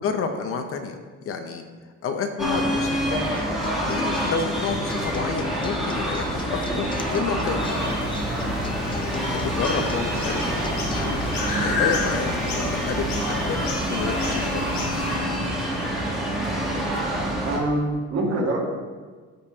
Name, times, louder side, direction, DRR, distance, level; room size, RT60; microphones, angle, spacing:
voice 1, 0.0-1.0 1.3-1.6 2.0-3.2 3.9-7.8 9.2-10.4 10.9-11.2 11.6-14.6, left 5 dB, 50° left, 6 dB, 0.7 m, -29 dB
sound 1, 2.4-17.6, right 1 dB, ahead, 1.3 m, -27 dB
Acoustic guitar, 3.1-11.1, left 4 dB, 20° left, 0.3 m, -36 dB
sound 2, 7.6-15.2, left 4 dB, 80° left, 2.2 m, -32 dB
voice 2, 11.5-11.8 17.4-18.6, right 2 dB, 55° right, -2 dB, 2.0 m, -25 dB
14.0 x 5.2 x 2.9 m, 1.5 s
cardioid pair, 175°, 29 cm